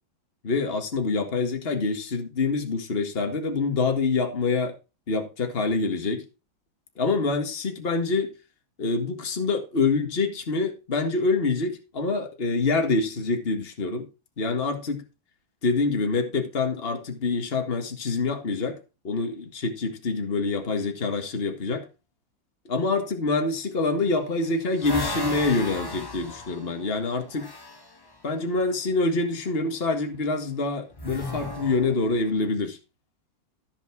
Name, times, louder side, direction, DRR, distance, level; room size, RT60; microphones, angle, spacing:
voice 1, 0.4-4.7 5.1-6.2 7.0-8.3 8.8-14.1 14.4-15.0 15.6-18.8 19.0-21.9 22.7-27.5 28.2-32.8, left 3 dB, 30° left, 1.9 m, -26 dB
sound 1, 24.0-27.9 30.9-32.4, left 1 dB, 15° left, 0.9 m, -35 dB
14.5 x 5.6 x 4.7 m
omnidirectional pair, 2.1 m